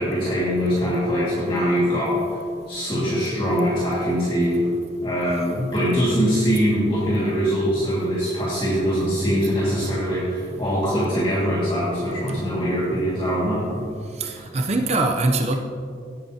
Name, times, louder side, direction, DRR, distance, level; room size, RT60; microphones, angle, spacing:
voice 1, 0.0-2.2 2.7-4.7 5.0-13.8, equal, 25° left, -9 dB, 2.0 m, -22 dB
voice 2, 14.1-15.6, right 2 dB, 35° right, 4 dB, 0.6 m, -23 dB
17.0 x 8.9 x 2.8 m, 2.3 s
head